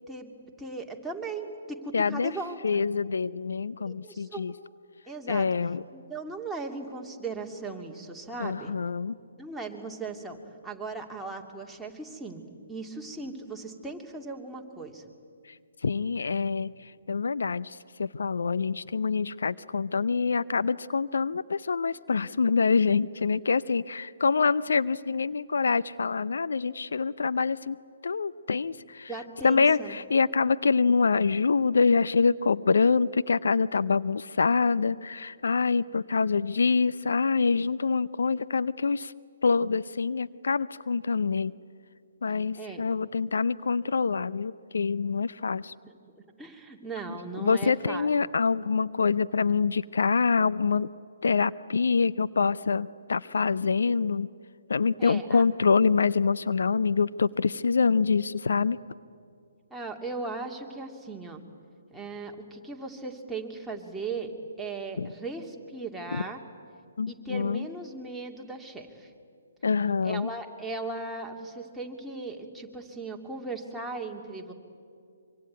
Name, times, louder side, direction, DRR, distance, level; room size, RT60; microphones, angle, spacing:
voice 1, 0.6-2.8 3.9-4.4 5.1-5.5 5.9-8.7 9.4-10.4 10.6-12.4 12.7-15.0 29.1-29.9 42.5-42.8 46.4-48.1 55.0-55.4 59.7-61.4 61.9-64.3 64.6-66.4 67.1-69.1 70.0-74.5, right 3 dB, 5° right, -1 dB, 2.5 m, -37 dB
voice 2, 1.9-2.3 2.6-4.5 5.3-5.8 8.4-9.2 15.4-15.6 15.8-27.8 28.0-29.1 29.4-39.1 39.4-41.5 42.2-45.7 47.4-50.9 51.2-54.3 54.7-58.8 65.0-65.1 66.1-66.2 67.0-67.7 69.6-70.3, left 5 dB, 65° left, 16 dB, 0.6 m, -25 dB
25.0 x 24.5 x 9.4 m, 2.4 s
figure-of-eight pair, 135°, 0 cm